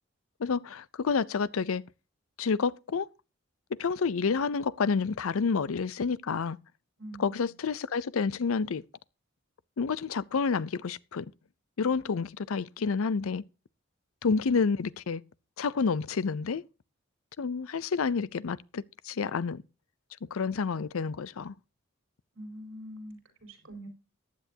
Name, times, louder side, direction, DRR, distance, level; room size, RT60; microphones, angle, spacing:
voice 1, 0.4-1.8 2.4-3.1 3.8-6.6 7.2-8.8 9.8-11.3 11.8-13.4 14.2-15.2 15.6-16.6 17.4-19.6 20.2-21.5, left 5 dB, 85° left, 0.5 m, -29 dB
voice 2, 7.0-7.5 22.3-23.9, equal, 75° right, 4.5 m, -44 dB
14.5 x 10.5 x 2.8 m
head